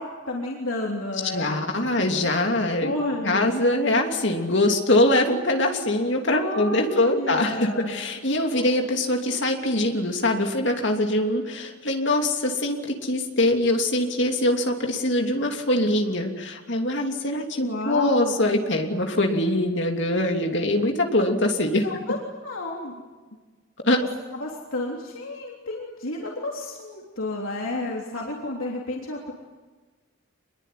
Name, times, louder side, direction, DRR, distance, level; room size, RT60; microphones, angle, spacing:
voice 1, 0.0-1.5 2.0-2.1 2.8-3.5 6.3-8.0 8.5-8.8 17.5-18.4 21.8-22.2 22.4-23.0 24.4-29.3, left 2 dB, 75° left, -1 dB, 3.5 m, -31 dB
voice 2, 1.3-2.9 3.2-21.9 23.8-24.0, left 1 dB, 55° left, 3 dB, 3.0 m, -23 dB
26.0 x 22.0 x 9.5 m, 1.3 s
head